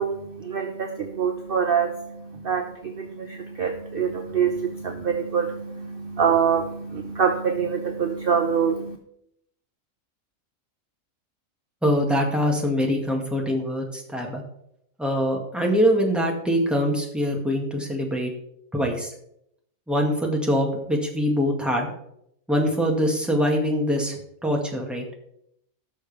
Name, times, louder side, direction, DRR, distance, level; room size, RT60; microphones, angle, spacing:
voice 1, 0.0-9.0, right 7 dB, 45° right, 4 dB, 0.9 m, -25 dB
voice 2, 11.8-14.4 15.0-18.3 18.7-19.1 19.9-21.9 22.5-25.0, equal, ahead, -1 dB, 1.9 m, -23 dB
17.0 x 6.4 x 3.5 m, 0.75 s
omnidirectional pair, 1.4 m